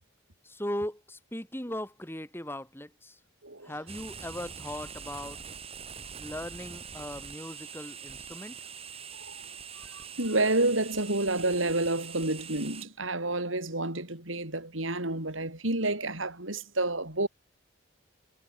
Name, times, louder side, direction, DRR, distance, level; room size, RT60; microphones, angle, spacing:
voice 1, 0.4-3.2 3.6-5.4 6.2-8.6, left 1 dB, 10° left, 6.4 m, -38 dB
voice 2, 3.4-3.7 9.1-9.4 9.8-17.3, right 2 dB, 80° right, 6.8 m, -29 dB
sound 1, 3.9-12.9, right 6 dB, 30° right, 5.2 m, -44 dB
head